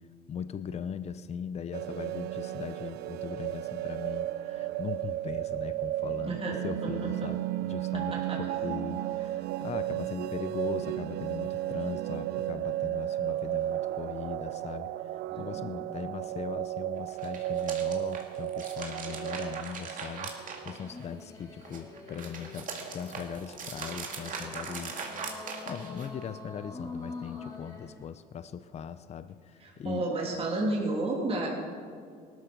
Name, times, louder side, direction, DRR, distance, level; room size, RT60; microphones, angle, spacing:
voice 1, 0.3-6.4 6.6-14.9 15.4-25.0 25.7-30.1, left 7 dB, 40° left, 13 dB, 0.6 m, -39 dB
sound 1, 1.7-20.8, right 14 dB, 75° right, 0.5 m, -34 dB
voice 2, 6.2-7.3 7.9-8.4 15.3-15.7 29.6-31.5, right 2 dB, 35° right, -2 dB, 3.0 m, -32 dB
sound 2, 17.1-21.2 21.6-26.2, right 5 dB, 50° right, 2.3 m, -40 dB
sound 3, 20.7-28.1, left 3 dB, 20° left, 3.0 m, -45 dB
18.5 x 13.0 x 5.3 m, 2.1 s
cardioid pair, 110°, 17 cm